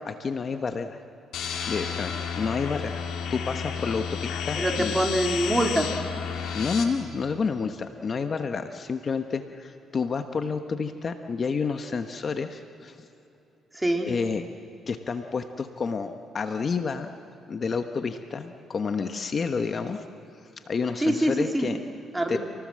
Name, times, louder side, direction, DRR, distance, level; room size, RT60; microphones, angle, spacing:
voice 1, 0.0-1.0 1.7-2.9 3.3-5.0 6.5-13.1 14.1-14.4 14.9-17.1 17.5-20.0 20.4-21.8 22.3-22.4, left 5 dB, 45° left, 7 dB, 1.2 m, -29 dB
sound 1, 1.3-6.8, left 7 dB, 80° left, 2.5 m, -31 dB
voice 2, 4.6-5.9 13.7-14.1 21.0-21.7 22.1-22.4, right 1 dB, 10° right, 2 dB, 3.2 m, -24 dB
28.0 x 18.5 x 7.7 m, 2.9 s
cardioid pair, 90°, 0 cm